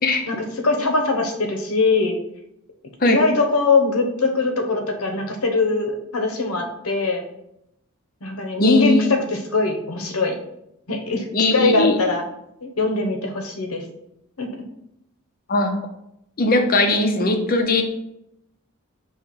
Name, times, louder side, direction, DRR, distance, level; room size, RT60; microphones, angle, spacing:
voice 1, 0.6-2.2 3.0-7.2 8.2-10.3 10.9-12.2 12.6-13.8 14.4-14.5, left 3 dB, 80° left, 4 dB, 1.1 m, -21 dB
voice 2, 8.6-9.1 11.3-12.0 15.5-15.7 16.4-17.8, left 2 dB, 40° left, 5 dB, 0.8 m, -19 dB
6.2 x 3.2 x 4.7 m, 0.80 s
head